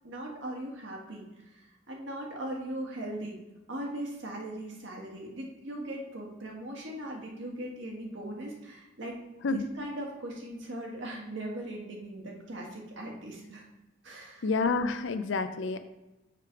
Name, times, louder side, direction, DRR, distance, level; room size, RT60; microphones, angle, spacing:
voice 1, 0.0-3.4 3.7-9.2 9.5-13.6 14.0-14.4, right 1 dB, 70° right, -1 dB, 1.6 m, -39 dB
voice 2, 14.4-15.8, left 4 dB, 70° left, 10 dB, 0.5 m, -29 dB
6.6 x 3.3 x 5.7 m, 1.0 s
head